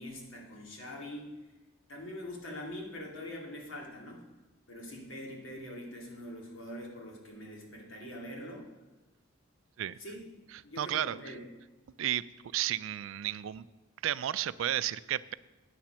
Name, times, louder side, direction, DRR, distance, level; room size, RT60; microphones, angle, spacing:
voice 1, 0.0-1.3 1.9-4.2 4.7-8.7 10.0-10.3 10.6-11.4, left 1 dB, 80° left, -1 dB, 2.5 m, -43 dB
voice 2, 10.8-11.2 12.0-12.2 12.5-13.7 14.0-15.3, right 11 dB, 75° right, 17 dB, 0.3 m, -32 dB
9.2 x 7.3 x 6.2 m, 1.1 s
head